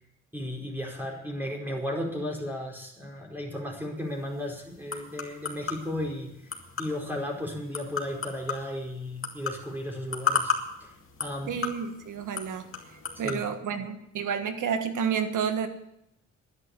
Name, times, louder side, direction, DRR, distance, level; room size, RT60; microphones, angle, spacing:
voice 1, 0.3-6.3 6.8-10.5 10.8-10.9 11.2-11.6 13.2-13.4, left 1 dB, 5° right, -1 dB, 4.7 m, -34 dB
sound 1, 4.0-13.4, left 5 dB, 45° left, 2.5 m, -35 dB
voice 2, 11.5-12.7 13.2-15.7, right 7 dB, 75° right, 9 dB, 1.5 m, -30 dB
11.0 x 10.5 x 8.2 m, 0.80 s
cardioid pair, 80°, 31 cm